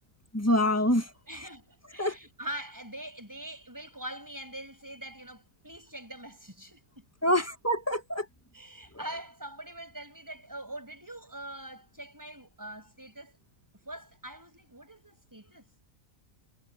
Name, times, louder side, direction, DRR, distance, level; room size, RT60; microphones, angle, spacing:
voice 1, 0.3-1.1 2.0-2.2 7.2-8.2, left 1 dB, 10° left, 1.5 m, -25 dB
voice 2, 1.3-7.1 7.3-7.5 8.5-13.4 13.9-15.7, right 1 dB, 15° right, 6.9 m, -43 dB
omnidirectional pair, 1.4 m